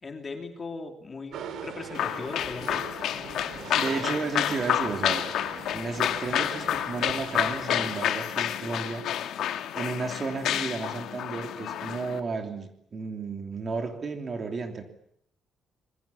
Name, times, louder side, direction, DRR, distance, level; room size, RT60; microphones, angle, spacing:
voice 1, 0.0-2.9, left 3 dB, 25° left, 4 dB, 3.1 m, -38 dB
Cafeteria ambient, 1.3-8.0, right 8 dB, 70° right, 3.1 m, -42 dB
sound 1, 1.9-12.2, left 10 dB, 75° left, 1.8 m, -29 dB
voice 2, 3.7-5.2 5.7-9.1 9.7-14.8, right 4 dB, 30° right, 5 dB, 3.1 m, -33 dB
26.5 x 22.0 x 8.5 m, 0.72 s
cardioid pair, 170°, 0 cm